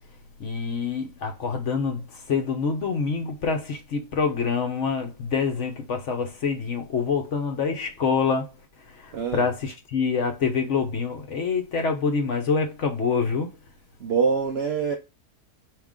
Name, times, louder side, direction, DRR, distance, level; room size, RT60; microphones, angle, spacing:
voice 1, 0.4-13.6, left 5 dB, 55° left, 1.0 m, -26 dB
voice 2, 9.1-9.5 14.0-15.0, right 5 dB, 60° right, 0.6 m, -24 dB
5.0 x 2.9 x 3.6 m
omnidirectional pair, 1.7 m